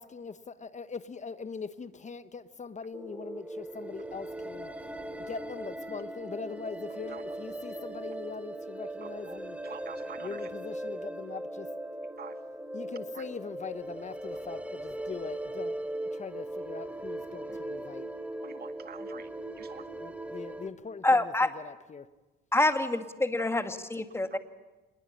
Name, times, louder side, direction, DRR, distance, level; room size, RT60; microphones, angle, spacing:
voice 1, 0.0-4.7 5.3-9.6 10.2-11.7 12.7-18.1 20.0-22.1, left 5 dB, 35° left, 1.1 m, -41 dB
sound 1, 2.9-20.7, right 1 dB, 5° right, 2.5 m, -39 dB
voice 2, 9.0-10.5 12.2-12.5 13.1-13.2 17.5-17.6 18.4-19.8, right 7 dB, 50° right, 2.0 m, -47 dB
voice 3, 21.0-21.5 22.5-24.4, left 2 dB, 10° left, 2.0 m, -26 dB
26.0 x 21.0 x 8.7 m
cardioid pair, 90°, 20 cm